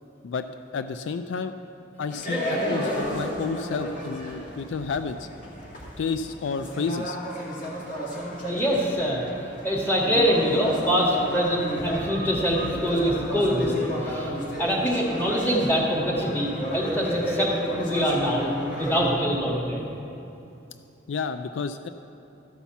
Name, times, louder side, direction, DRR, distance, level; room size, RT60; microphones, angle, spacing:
voice 1, 0.7-1.5 2.0-5.3 6.0-7.2 21.1-21.9, left 5 dB, 70° left, 9 dB, 0.4 m, -30 dB
sound 1, 2.1-19.1, equal, 45° left, 2.0 m, -32 dB
voice 2, 8.4-9.3 9.6-14.3 14.6-19.8, equal, 10° left, -3 dB, 1.7 m, -24 dB
13.0 x 5.6 x 7.2 m, 2.8 s
head